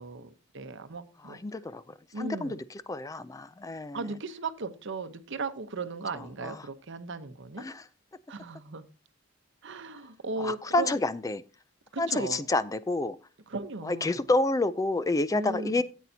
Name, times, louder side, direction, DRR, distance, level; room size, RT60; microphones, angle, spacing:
voice 1, 0.0-1.4 2.1-2.6 3.9-7.7 8.3-8.9 9.6-11.0 11.9-12.4 13.5-14.2 15.3-15.8, right 3 dB, 65° right, 10 dB, 0.8 m, -37 dB
voice 2, 1.2-1.8 2.2-2.6 2.9-4.0 6.4-6.6 7.6-7.8 10.4-11.4 12.0-13.2 13.8-15.8, left 2 dB, 15° left, 15 dB, 0.4 m, -28 dB
13.0 x 8.4 x 2.7 m, 0.33 s
head